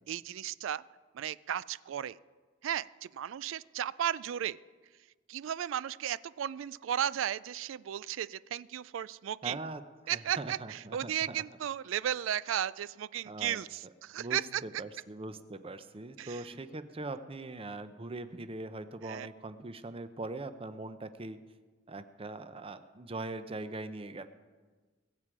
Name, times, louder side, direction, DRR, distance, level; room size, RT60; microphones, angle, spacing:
voice 1, 0.1-0.8 1.1-2.2 2.6-4.6 5.3-9.6 10.1-14.6 16.2-16.4 19.0-19.3, right 10 dB, 75° right, 19 dB, 0.3 m, -35 dB
voice 2, 9.4-11.4 13.2-13.6 14.2-21.4 21.9-24.3, right 2 dB, 30° right, 11 dB, 0.7 m, -41 dB
21.5 x 7.5 x 4.9 m, 1.4 s
head